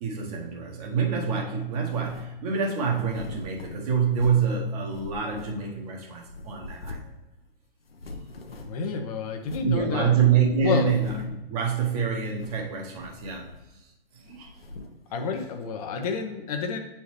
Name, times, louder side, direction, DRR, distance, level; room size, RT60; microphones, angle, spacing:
voice 1, 0.0-7.1 9.6-13.5 14.2-14.5 14.8-14.9, right 6 dB, 40° right, 0 dB, 1.4 m, -26 dB
sound 1, 1.8-2.4 2.9-4.6 4.9-5.9 6.2-7.2 7.5-7.6 7.8-8.9 9.4-9.8 10.2-10.3 10.8-11.4 12.2-12.7 13.0-13.9 14.2-15.0, left 2 dB, 75° left, 0.8 m, -42 dB
voice 2, 8.6-10.2 10.6-10.9 15.1-16.8, left 5 dB, 40° left, 5 dB, 0.7 m, -29 dB
8.1 x 4.2 x 3.2 m, 0.98 s
figure-of-eight pair, 110°, 29 cm